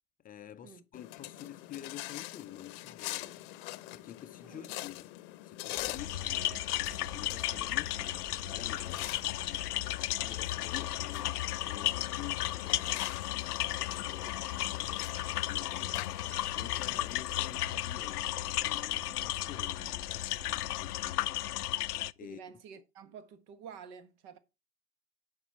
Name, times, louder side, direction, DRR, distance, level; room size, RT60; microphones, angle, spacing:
voice 1, 0.2-3.5 3.9-5.1 5.4-9.7 10.1-13.0 13.6-14.3 14.6-16.1 16.5-21.8 22.2-22.4, left 11 dB, 20° left, 0.6 m, -49 dB
sound 1, 0.9-17.6, left 18 dB, 50° left, 0.9 m, -45 dB
sound 2, 5.7-21.1, right 2 dB, 25° right, 2.5 m, -55 dB
sound 3, 6.0-22.1, left 15 dB, 75° left, 0.6 m, -34 dB
voice 2, 14.1-14.4 22.2-24.4, right 6 dB, 45° right, 1.5 m, -50 dB
9.8 x 5.3 x 4.6 m
hypercardioid pair, 100°, 47 cm